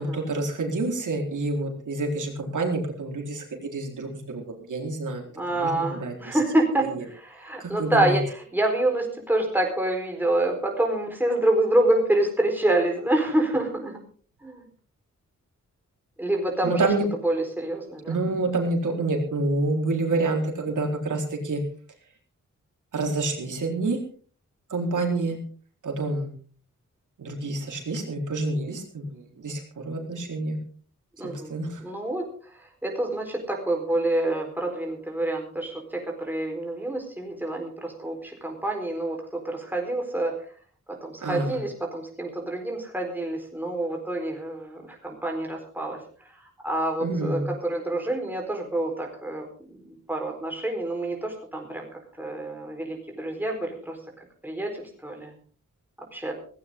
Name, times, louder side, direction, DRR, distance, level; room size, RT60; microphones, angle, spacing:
voice 1, 0.0-6.4 6.8-7.0 7.6-8.2 16.6-17.1 18.1-21.6 22.9-24.0 24.7-25.4 25.8-26.3 27.2-30.6 31.2-31.8 41.2-41.6 47.0-47.5, right 2 dB, 80° right, 1 dB, 4.3 m, -28 dB
voice 2, 5.4-14.0 14.4-14.6 16.2-16.8 17.2-18.2 25.0-25.3 31.2-32.3 32.8-40.3 41.0-46.0 46.6-49.4 49.9-51.9 52.2-54.0 54.4-55.3 56.1-56.3, right 1 dB, 5° right, 1 dB, 4.3 m, -27 dB
17.5 x 17.0 x 3.8 m, 0.43 s
wide cardioid pair, 175°, 30 cm